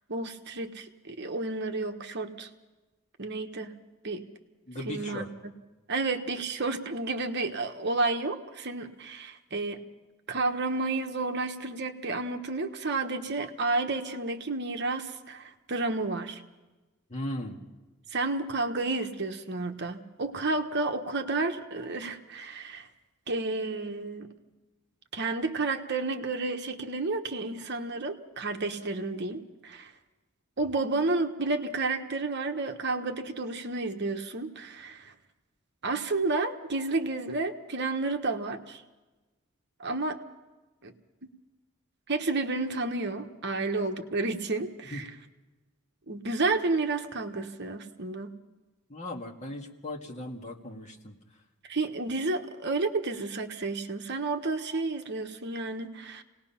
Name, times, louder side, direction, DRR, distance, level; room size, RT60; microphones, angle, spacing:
voice 1, 0.1-2.5 3.2-3.8 4.0-4.3 4.9-5.5 5.9-9.9 10.3-16.4 18.1-22.9 23.3-24.3 25.1-29.9 30.6-35.1 35.8-38.8 39.8-40.2 40.8-40.9 42.1-45.1 46.1-48.3 51.7-56.2, right 3 dB, 50° right, 6 dB, 1.2 m, -31 dB
voice 2, 4.7-5.3 17.1-17.6 44.9-45.0 48.9-51.2, left 1 dB, 30° left, 1 dB, 2.0 m, -37 dB
28.0 x 18.5 x 5.8 m, 1.2 s
head